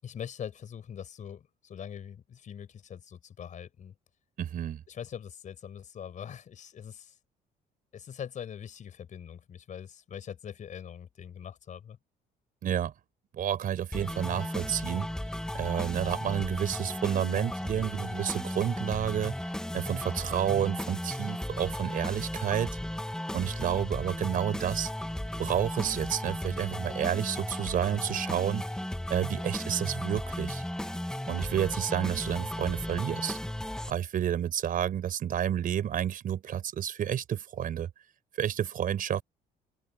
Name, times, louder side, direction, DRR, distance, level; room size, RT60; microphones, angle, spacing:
voice 1, 0.0-4.0 4.9-7.2 7.9-12.0, left 8 dB, 45° left, 5.2 m, -42 dB
voice 2, 4.4-4.8 12.6-12.9 13.3-15.1 15.5-19.5 19.7-22.8 23.3-24.9 25.4-28.6 29.1-30.6 31.3-33.4 33.9-37.9 38.4-39.2, right 10 dB, 55° right, 5.1 m, -30 dB
sound 1, 13.9-33.9, left 1 dB, 5° left, 1.0 m, -35 dB
open air
cardioid pair, 110°, 17 cm